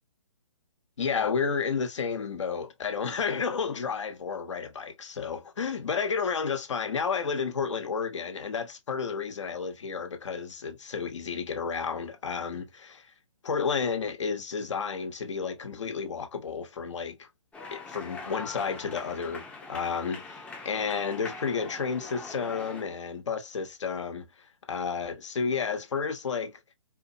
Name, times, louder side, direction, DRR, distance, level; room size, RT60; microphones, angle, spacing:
voice 1, 1.0-13.1 13.4-17.3 17.7-19.4 19.7-26.6, left 5 dB, 65° left, 1.4 m, -31 dB
sound 1, 17.5-22.8, left 3 dB, 5° left, 0.8 m, -42 dB
4.8 x 2.9 x 2.8 m
figure-of-eight pair, 135°, 17 cm